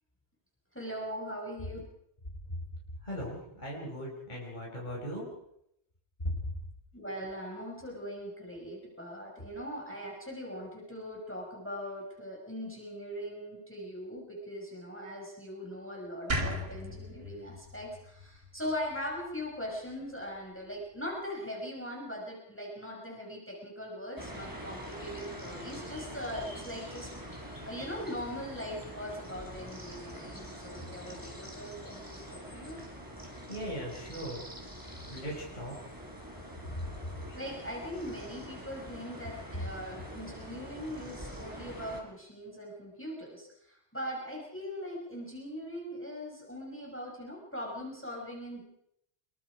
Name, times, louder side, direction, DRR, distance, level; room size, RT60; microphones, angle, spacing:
voice 1, 0.7-1.8 6.9-32.8 37.4-48.6, equal, 10° left, -2 dB, 5.9 m, -40 dB
voice 2, 3.0-5.3 6.2-6.6 30.8-30.9 33.3-34.4 35.1-35.8 36.7-37.2, equal, 40° left, -4 dB, 5.8 m, -38 dB
sound 1, 16.3-19.5, equal, 60° right, 2.2 m, -37 dB
sound 2, 24.2-42.0, equal, 15° right, 4.9 m, -45 dB
27.0 x 23.0 x 4.9 m, 0.76 s
omnidirectional pair, 1.1 m